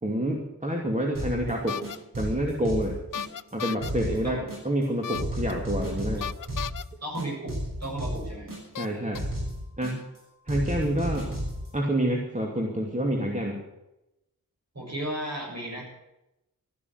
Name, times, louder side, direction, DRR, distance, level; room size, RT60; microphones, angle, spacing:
voice 1, 0.0-1.8 2.2-3.0 3.5-4.4 4.6-6.3 8.8-9.2 9.8-10.0 10.5-11.3 11.7-13.6, right 1 dB, 20° right, 0 dB, 2.6 m, -28 dB
sound 1, 1.1-1.5 1.8-3.5 3.8-4.8 5.1-6.8 7.1-8.8 9.1-10.2 10.5-11.7, equal, 65° right, 6.6 m, -33 dB
sound 2, 1.7-2.0 3.1-3.9 5.0-5.5 6.2-6.8 7.9-8.0 8.8-9.2, left 9 dB, 60° left, 0.5 m, -34 dB
voice 2, 7.0-8.5 14.7-15.9, right 1 dB, 45° right, -1 dB, 7.4 m, -34 dB
13.5 x 11.5 x 8.0 m, 0.90 s
wide cardioid pair, 65°, 36 cm